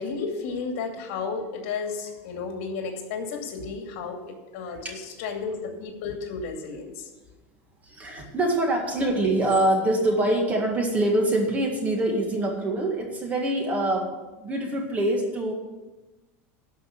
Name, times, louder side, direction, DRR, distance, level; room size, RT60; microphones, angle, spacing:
voice 1, 0.0-7.1, left 5 dB, 65° left, 3 dB, 2.5 m, -33 dB
voice 2, 7.8-15.5, right 1 dB, 20° right, 2 dB, 1.9 m, -24 dB
12.0 x 5.5 x 8.4 m, 1.2 s
supercardioid pair, 150°, 7 cm